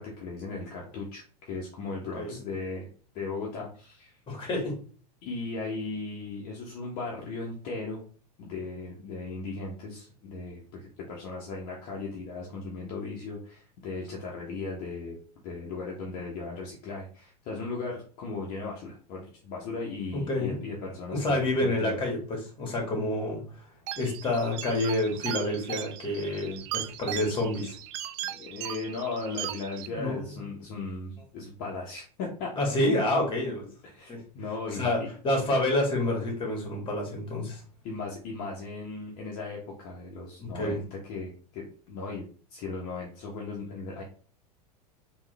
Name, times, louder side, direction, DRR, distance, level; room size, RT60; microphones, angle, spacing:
voice 1, 0.0-2.9 3.1-4.2 5.2-8.0 8.4-15.2 15.4-22.0 28.2-32.5 33.8-35.1 37.8-44.0, left 3 dB, 45° left, -2 dB, 1.1 m, -37 dB
voice 2, 4.3-4.8 20.1-20.6 21.1-23.7 24.0-27.8 29.9-30.3 32.6-33.7 34.1-34.2 34.7-35.0 35.2-37.6 40.4-40.8, left 1 dB, 25° left, 1 dB, 2.0 m, -28 dB
sound 1, 23.9-29.9, right 13 dB, 45° right, 0.4 m, -38 dB
3.6 x 3.1 x 3.3 m, 0.42 s
figure-of-eight pair, 90°, 21 cm